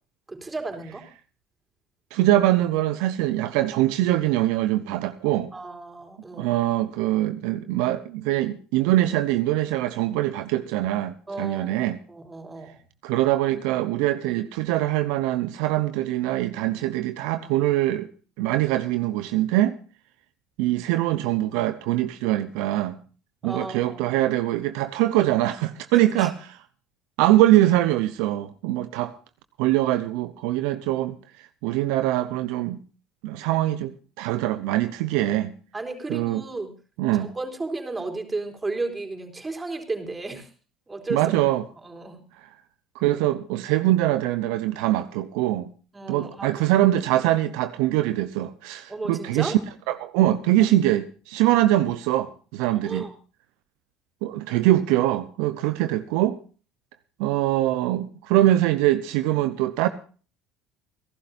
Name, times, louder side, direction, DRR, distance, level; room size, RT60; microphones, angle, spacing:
voice 1, 0.3-1.0 5.5-6.5 11.3-11.7 12.1-12.8 23.4-24.2 25.9-26.3 35.7-36.7 37.1-40.5 40.9-41.3 41.8-42.2 45.9-46.6 48.9-49.6 52.7-53.1, right 3 dB, 20° right, 4.1 m, -33 dB
voice 2, 2.1-5.5 6.4-12.0 13.0-18.1 18.4-19.7 20.6-23.0 23.4-26.6 27.2-29.1 29.6-32.8 33.2-35.5 36.1-36.4 37.0-37.3 41.1-41.6 42.9-45.7 46.1-49.6 49.9-53.1 54.2-56.4 57.2-59.9, right 14 dB, 75° right, 0.8 m, -23 dB
29.0 x 12.0 x 2.6 m
hypercardioid pair, 75°, 0 cm